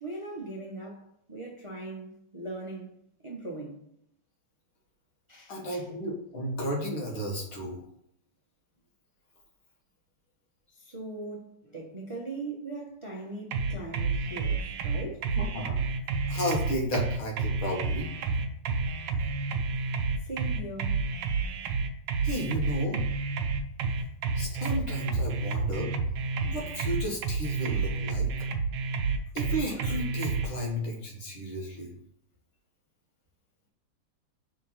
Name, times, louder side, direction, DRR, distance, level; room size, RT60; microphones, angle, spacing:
voice 1, 0.0-1.0 1.3-2.9 3.2-3.8 5.3-5.8 10.8-15.2 20.2-21.0, right 2 dB, 20° right, 1.0 m, -39 dB
voice 2, 5.5-7.8 15.4-15.8 16.3-18.1 22.2-23.0 24.4-25.9 26.4-28.5 29.3-31.9, equal, 75° left, 2.3 m, -33 dB
sound 1, 13.5-30.5, right 4 dB, 75° right, 1.5 m, -30 dB
5.6 x 3.9 x 5.6 m
omnidirectional pair, 2.2 m